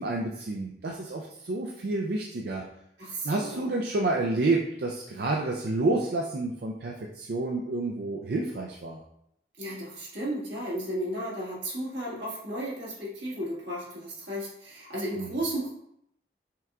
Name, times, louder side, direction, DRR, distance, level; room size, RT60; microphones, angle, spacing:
voice 1, 0.0-2.6 3.2-9.0 15.2-15.3, right 2 dB, 65° right, 0 dB, 0.4 m, -29 dB
voice 2, 3.0-3.7 9.6-15.7, right 1 dB, 85° right, -6 dB, 1.7 m, -34 dB
5.7 x 2.2 x 3.6 m, 0.74 s
head